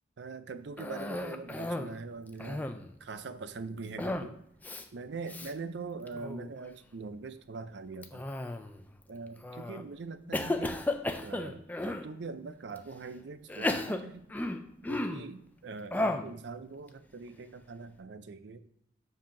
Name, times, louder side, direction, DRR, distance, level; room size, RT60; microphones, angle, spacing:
voice 1, 0.2-2.6 3.0-4.4 4.9-8.2 9.1-10.8 11.2-14.3 14.9-18.6, right 4 dB, 65° right, 12 dB, 0.5 m, -42 dB
Cough, 0.8-2.0 2.3-2.9 4.0-4.3 4.6-4.8 5.3-5.5 6.1-6.5 8.0-8.8 9.4-9.8 10.3-12.1 12.8-12.9 13.5-15.3 15.9-16.3, left 1 dB, 10° left, 0.3 m, -34 dB
7.4 x 2.8 x 5.8 m, 0.74 s
head